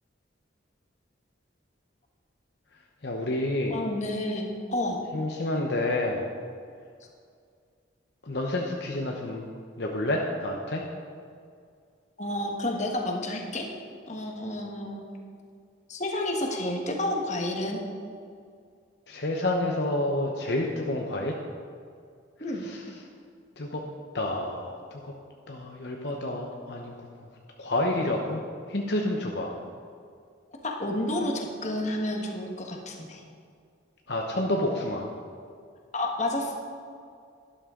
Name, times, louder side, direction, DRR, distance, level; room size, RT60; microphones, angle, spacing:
voice 1, 3.0-3.8 5.1-6.3 8.3-9.5 9.8-10.8 19.1-21.4 22.6-22.8 23.6-23.8 24.1-24.7 25.5-26.9 27.6-28.4 28.7-29.5 34.1-35.1, left 1 dB, 60° left, 0 dB, 0.9 m, -29 dB
voice 2, 3.7-5.0 12.2-13.7 14.1-15.0 15.9-17.8 22.4-22.7 30.6-33.2 35.9-36.6, left 1 dB, 40° left, 1 dB, 1.4 m, -30 dB
12.5 x 11.5 x 3.8 m, 2.2 s
head